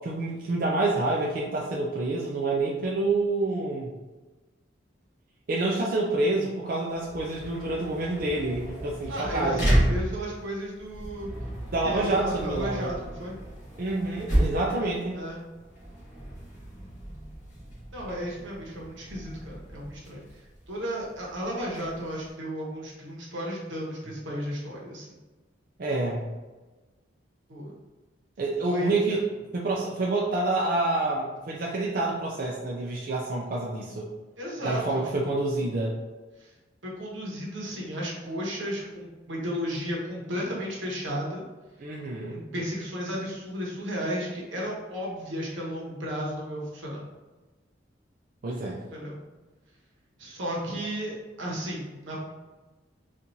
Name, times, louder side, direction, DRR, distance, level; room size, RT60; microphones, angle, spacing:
voice 1, 0.0-3.9 5.5-9.8 11.7-12.9 13.8-15.2 25.8-26.3 28.4-29.2 29.5-34.1 34.6-36.0 41.8-42.4 48.4-48.8, right 2 dB, 45° right, -3 dB, 0.4 m, -28 dB
sound 1, 6.9-22.3, right 1 dB, 40° left, 1.4 m, -32 dB
voice 2, 9.1-11.3 11.8-13.4 15.1-15.4 17.9-20.2 20.7-25.2 27.5-27.7 28.6-29.2 34.4-34.8 35.2-35.3 36.4-36.5 36.8-41.4 42.2-47.0 48.9-49.2 50.2-52.2, equal, 80° right, -3 dB, 1.0 m, -34 dB
4.4 x 2.5 x 2.6 m, 1.2 s
head